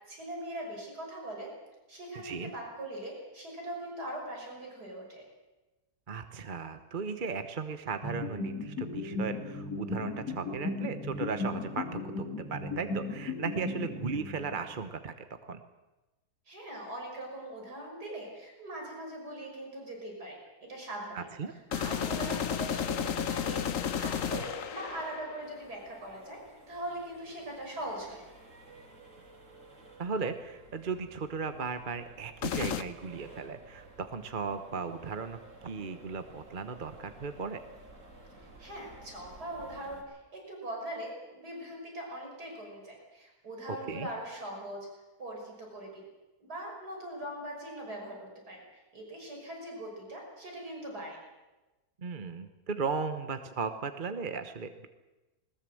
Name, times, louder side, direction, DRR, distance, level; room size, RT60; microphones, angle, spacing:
voice 1, 0.1-1.5 1.9-5.2 16.5-21.3 21.7-28.2 38.6-44.9 45.2-46.1 46.4-48.6 48.9-51.2, right 1 dB, 80° right, 0 dB, 6.5 m, -41 dB
voice 2, 2.1-2.5 6.1-15.1 15.4-15.6 21.1-21.5 30.0-37.6 43.7-44.1 52.0-54.9, right 5 dB, 35° right, 9 dB, 1.0 m, -36 dB
sound 1, 8.0-14.7, left 3 dB, 85° left, 3.9 m, -36 dB
sound 2, 21.7-25.8 32.4-32.8, left 8 dB, 60° left, 1.3 m, -33 dB
Accelerating revving vroom, 25.4-40.0, right 2 dB, 55° right, 3.3 m, -54 dB
21.0 x 20.0 x 7.8 m, 1.1 s
omnidirectional pair, 1.7 m